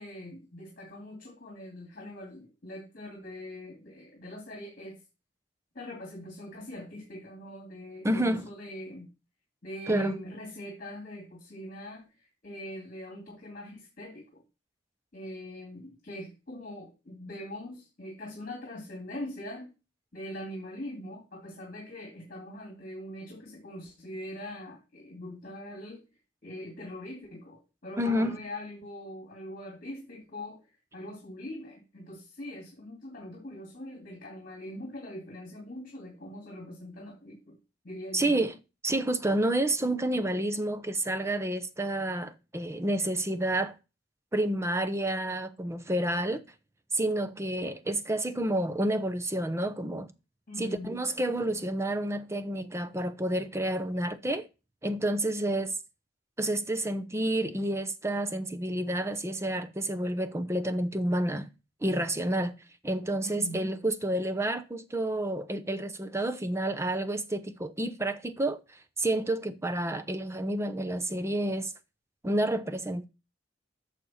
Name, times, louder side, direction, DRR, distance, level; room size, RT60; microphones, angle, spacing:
voice 1, 0.0-5.0 5.7-9.1 9.6-14.4 15.1-19.7 20.1-26.0 26.4-30.6 30.9-37.6 37.8-38.4 50.5-50.9 63.2-63.7, left 1 dB, 45° left, 2.3 m, -42 dB
voice 2, 8.0-8.4 9.9-10.2 28.0-28.4 38.1-38.6 38.8-43.7 44.3-46.4 46.9-50.1 50.6-54.5 54.8-55.7 56.4-61.5 61.8-62.5 62.8-68.6 69.0-71.7 72.2-73.1, right 1 dB, 15° right, 0.8 m, -29 dB
11.5 x 6.7 x 4.3 m
head